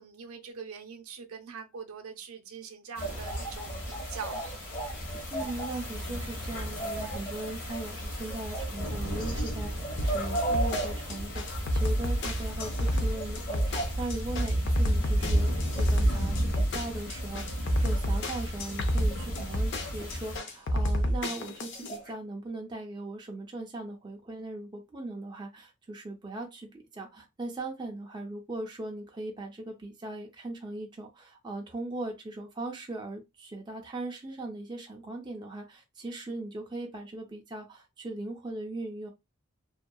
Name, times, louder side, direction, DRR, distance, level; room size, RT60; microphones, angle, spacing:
voice 1, 0.0-4.4, right 6 dB, 80° right, 0.5 m, -43 dB
sound 1, 2.9-20.4, equal, 75° left, 1.2 m, -33 dB
sound 2, 3.0-5.7 6.0-9.5 9.8-12.1 12.3-12.4 12.7-14.2 15.6-17.6 18.2-18.3 18.9-20.2 20.5-20.6 20.8-21.1 21.3-21.4 21.7-22.1, right 2 dB, 40° left, 1.1 m, -37 dB
voice 2, 5.3-39.1, right 2 dB, 20° right, 0.4 m, -39 dB
sound 3, 10.0-22.0, equal, 55° left, 0.5 m, -29 dB
2.6 x 2.2 x 2.2 m
head